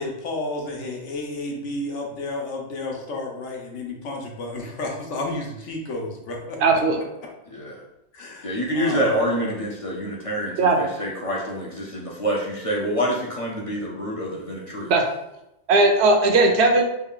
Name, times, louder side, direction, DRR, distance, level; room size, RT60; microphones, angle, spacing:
voice 1, 0.0-6.6 8.1-9.5, left 2 dB, 85° left, 0 dB, 1.1 m, -31 dB
voice 2, 6.6-7.0 10.6-10.8 14.9-15.0 15.7-16.8, right 3 dB, 70° right, 2 dB, 0.8 m, -17 dB
voice 3, 8.4-14.9, equal, 45° left, -3 dB, 0.4 m, -26 dB
3.4 x 2.4 x 3.6 m, 0.86 s
omnidirectional pair, 1.2 m